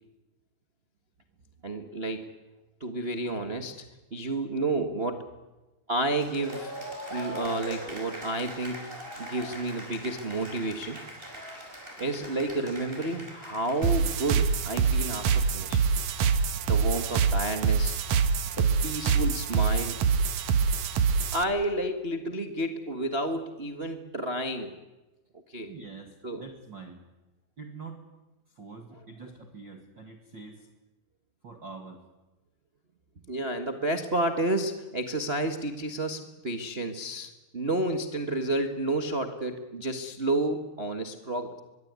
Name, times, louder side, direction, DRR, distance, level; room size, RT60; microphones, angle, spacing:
voice 1, 1.6-2.3 2.8-3.8 4.1-5.3 5.9-6.7 7.1-8.9 9.2-11.0 12.0-15.8 16.7-18.0 18.6-20.0 21.3-24.8 25.5-25.7 26.2-26.4 33.3-41.6, right 1 dB, 85° right, 5 dB, 0.5 m, -30 dB
Cheering / Applause, 6.1-15.7, right 1 dB, 15° right, 6.0 m, -42 dB
sound 1, 13.8-21.4, right 5 dB, 60° right, 2.2 m, -25 dB
voice 2, 25.7-27.0 27.6-28.0 28.5-30.7 31.4-32.0, right 4 dB, 40° right, 4 dB, 2.1 m, -45 dB
24.5 x 22.5 x 9.6 m, 1.1 s
omnidirectional pair, 4.2 m